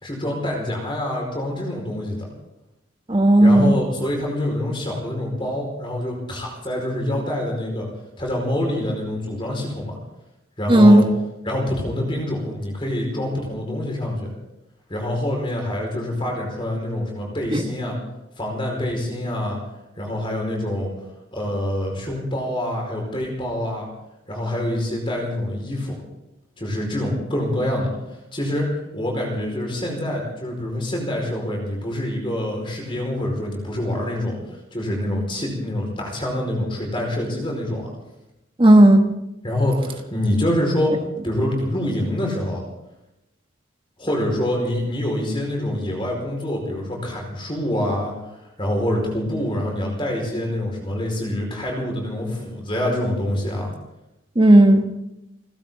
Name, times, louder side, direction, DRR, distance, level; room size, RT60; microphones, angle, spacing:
voice 1, 0.0-2.3 3.4-7.9 8.2-10.0 10.6-11.0 11.4-14.3 14.9-18.0 18.4-19.6 20.0-20.9 21.3-23.9 24.3-26.0 26.6-27.9 28.3-37.9 39.4-40.9 41.2-42.6 44.0-48.1 48.6-53.7, left 1 dB, 25° left, 0 dB, 4.8 m, -26 dB
voice 2, 3.1-3.8 10.7-11.1 17.5-17.6 38.6-39.0 54.4-54.9, right 1 dB, 25° right, 5 dB, 1.3 m, -12 dB
30.0 x 12.5 x 3.8 m, 0.90 s
head